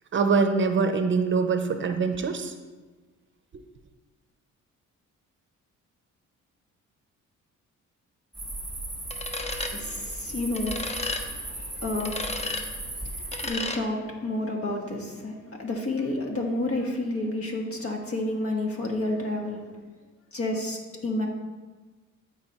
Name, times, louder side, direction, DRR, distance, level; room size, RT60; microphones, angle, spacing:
voice 1, 0.1-2.5, right 5 dB, 40° right, 7 dB, 0.7 m, -24 dB
sound 1, 8.3-13.5, right 2 dB, ahead, 2.6 m, -36 dB
sound 2, 9.1-9.7 10.5-11.2 12.0-12.6 13.3-13.8, left 3 dB, 20° left, 0.8 m, -32 dB
voice 2, 9.7-19.7 20.3-21.3, left 2 dB, 50° left, 1 dB, 1.5 m, -31 dB
12.0 x 4.9 x 3.0 m, 1.3 s
cardioid pair, 90°, 30 cm